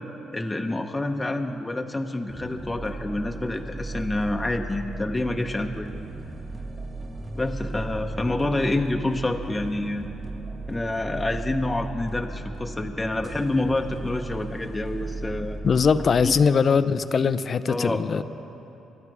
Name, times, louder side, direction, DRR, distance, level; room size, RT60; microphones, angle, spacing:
voice 1, 0.3-5.9 7.3-10.1 10.7-15.6 16.2-16.5 17.7-18.0, left 2 dB, 15° left, 3 dB, 0.9 m, -27 dB
sound 1, 2.3-16.5, right 2 dB, 25° right, 1.3 m, -36 dB
sound 2, 3.6-12.7, right 2 dB, 45° right, 2.3 m, -45 dB
voice 2, 15.6-18.2, left 5 dB, 45° left, 14 dB, 0.5 m, -21 dB
26.5 x 11.5 x 4.8 m, 3.0 s
cardioid pair, 90°, 0 cm